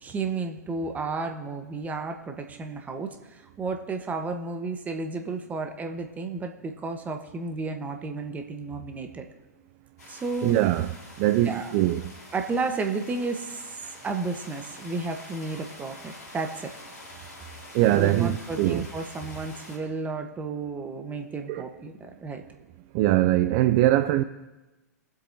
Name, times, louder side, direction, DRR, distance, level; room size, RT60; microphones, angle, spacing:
voice 1, 0.0-3.2 3.6-9.3 10.1-10.5 11.4-11.7 12.3-13.6 14.0-16.7 17.9-22.4, right 3 dB, 15° right, 1.2 m, -32 dB
sound 1, 10.0-19.8, left 1 dB, 75° left, 4.7 m, -46 dB
voice 2, 10.4-10.9 11.2-12.1 17.7-18.8 21.5-21.7 22.9-24.2, right 14 dB, 40° right, 0.4 m, -22 dB
23.0 x 7.8 x 2.8 m
figure-of-eight pair, 105°, 9 cm